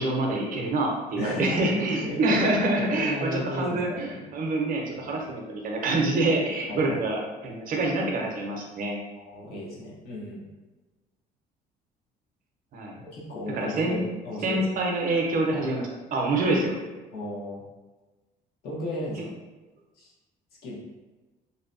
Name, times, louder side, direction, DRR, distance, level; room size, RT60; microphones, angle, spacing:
voice 1, 0.0-9.0 12.7-13.0 13.5-14.0 14.4-16.8, right 2 dB, 55° right, 0 dB, 0.6 m, -26 dB
voice 2, 1.2-2.5 2.8-4.2 4.9-5.2 6.7-7.0 9.2-10.4 13.0-14.7 17.1-17.6 18.6-19.4 20.0-20.1 20.6-20.7, left 1 dB, 65° left, -5 dB, 0.9 m, -34 dB
2.7 x 2.1 x 2.5 m, 1.2 s
cardioid pair, 110°, 17 cm